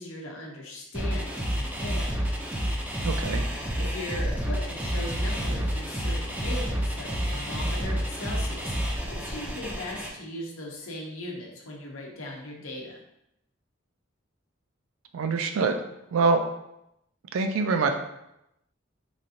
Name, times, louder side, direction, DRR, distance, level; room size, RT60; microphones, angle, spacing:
voice 1, 0.0-2.2 3.8-13.0, left 1 dB, 90° left, -1 dB, 0.7 m, -39 dB
sound 1, 0.9-10.1, equal, 10° right, 0.4 m, -29 dB
voice 2, 3.0-3.5 15.1-15.8 16.1-16.4 17.3-17.9, right 4 dB, 80° right, 6 dB, 0.4 m, -24 dB
3.2 x 2.5 x 2.6 m, 0.83 s
head